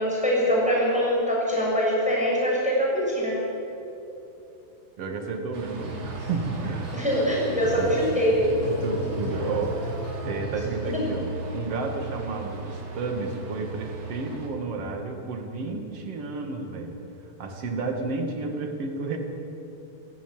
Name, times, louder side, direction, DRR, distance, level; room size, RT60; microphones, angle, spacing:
voice 1, 0.0-3.4 6.9-8.5, equal, ahead, -5 dB, 6.7 m, -23 dB
voice 2, 5.0-7.0 7.5-7.9 8.8-10.0 10.3-16.9 17.4-19.2, right 3 dB, 45° right, 3 dB, 2.7 m, -31 dB
sound 1, 5.5-14.5, right 2 dB, 70° right, 4.5 m, -37 dB
Female singing, 5.8-11.2, right 1 dB, 40° left, 7.6 m, -36 dB
28.0 x 11.5 x 9.6 m, 2.9 s
omnidirectional pair, 4.3 m